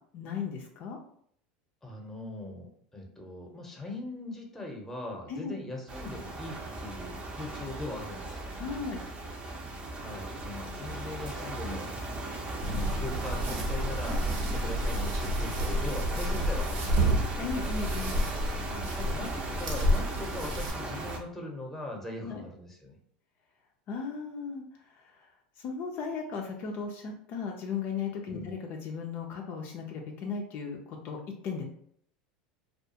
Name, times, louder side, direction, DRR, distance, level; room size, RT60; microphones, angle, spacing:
voice 1, 0.1-1.0 5.3-5.5 8.6-9.0 17.4-18.2 22.2-22.5 23.9-25.3 25.6-31.6, left 5 dB, 50° left, 1 dB, 0.4 m, -36 dB
voice 2, 1.8-8.5 9.9-11.9 12.6-17.2 18.7-23.0 28.3-28.5, left 1 dB, 5° left, 0 dB, 0.8 m, -40 dB
sound 1, 5.9-21.2, right 2 dB, 25° right, 0.6 m, -37 dB
sound 2, 12.6-20.7, equal, 70° right, 0.8 m, -30 dB
2.4 x 2.3 x 2.7 m, 0.64 s
hypercardioid pair, 95°, 4 cm